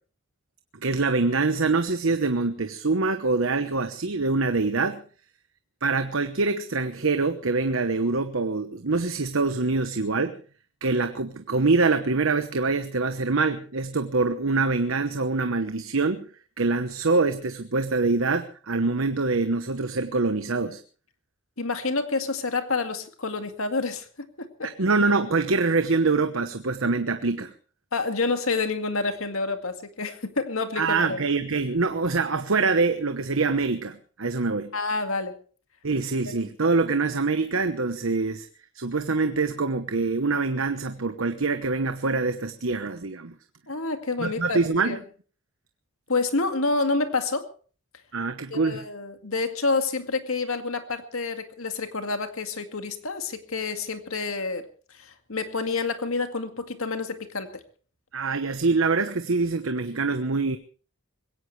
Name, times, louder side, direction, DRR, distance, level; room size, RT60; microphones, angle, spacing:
voice 1, 0.8-5.0 5.8-10.4 10.8-16.3 16.6-20.8 24.6-27.5 30.8-34.7 35.8-38.5 38.7-43.3 44.2-45.0 48.1-48.8 58.1-60.6, right 3 dB, 70° right, 9 dB, 1.1 m, -25 dB
voice 2, 21.6-24.7 27.9-31.2 34.7-35.3 43.7-45.0 46.1-47.5 48.5-54.7 54.9-57.6, left 3 dB, 80° left, 7 dB, 2.1 m, -28 dB
21.5 x 17.5 x 3.3 m, 0.40 s
head